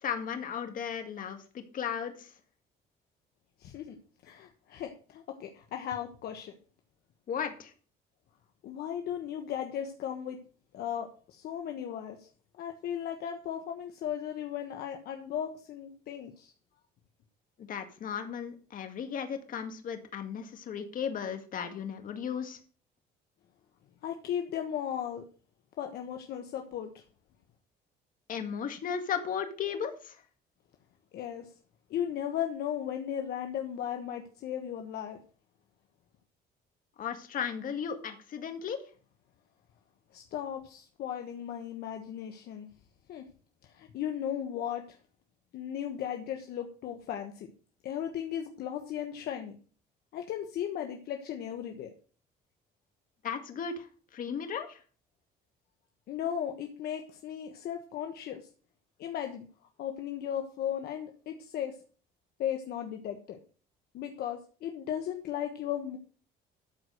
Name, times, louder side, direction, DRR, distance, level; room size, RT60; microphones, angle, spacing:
voice 1, 0.0-2.3 7.3-7.7 17.6-22.6 28.3-30.2 37.0-38.8 53.2-54.8, left 7 dB, 55° left, 7 dB, 2.0 m, -35 dB
voice 2, 3.6-3.9 4.2-6.6 8.6-10.4 10.7-12.3 12.6-16.5 24.0-25.2 25.8-27.0 31.1-31.5 31.9-35.2 40.1-42.7 43.1-43.2 43.6-45.0 45.5-47.5 47.8-49.6 50.1-51.9 56.1-58.5 59.0-59.5 59.8-61.7 62.4-63.4 63.9-66.0, left 9 dB, 70° left, 4 dB, 1.3 m, -36 dB
13.0 x 4.8 x 6.4 m, 0.39 s
cardioid pair, 110°, 17 cm